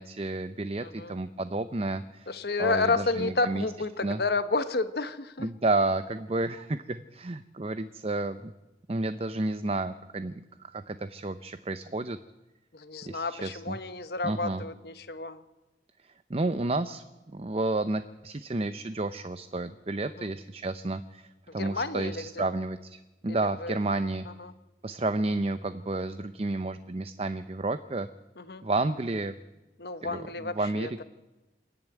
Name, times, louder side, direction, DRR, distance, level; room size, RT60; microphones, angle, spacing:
voice 1, 0.0-2.3 2.6-3.7 4.0-4.2 5.4-8.5 8.9-10.3 10.6-12.2 13.1-13.8 14.2-14.6 16.3-24.3 24.8-28.1 28.6-29.3 30.0-31.0, right 2 dB, 35° right, 11 dB, 0.6 m, -31 dB
voice 2, 0.8-1.2 2.3-5.5 12.7-15.4 20.0-20.3 21.6-22.4 23.4-23.8 24.2-24.5 28.4-28.6 29.8-31.0, left 3 dB, 65° left, 10 dB, 1.1 m, -31 dB
26.5 x 10.5 x 9.2 m, 1.1 s
head